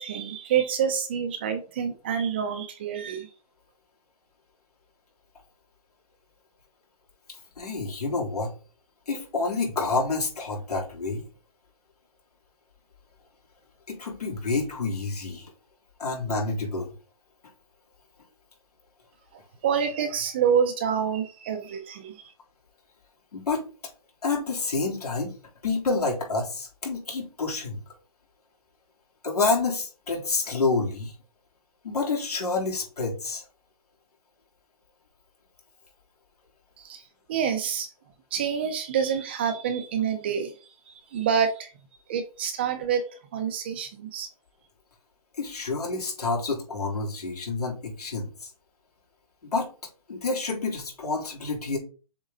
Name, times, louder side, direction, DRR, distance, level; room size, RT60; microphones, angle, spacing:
voice 1, 0.0-3.3 19.6-22.2 36.8-37.0 37.3-37.9 38.3-40.5 41.1-41.7 42.1-44.3, right 7 dB, 15° right, 7 dB, 0.4 m, -27 dB
voice 2, 7.6-8.5 9.1-11.3 13.9-15.5 16.0-16.9 23.3-23.6 24.2-25.3 25.6-27.8 29.2-31.1 31.8-33.4 45.4-48.5 49.5-49.7 50.1-51.8, left 3 dB, 85° left, -2 dB, 3.7 m, -28 dB
7.2 x 3.7 x 3.8 m, 0.35 s
hypercardioid pair, 165°, 19 cm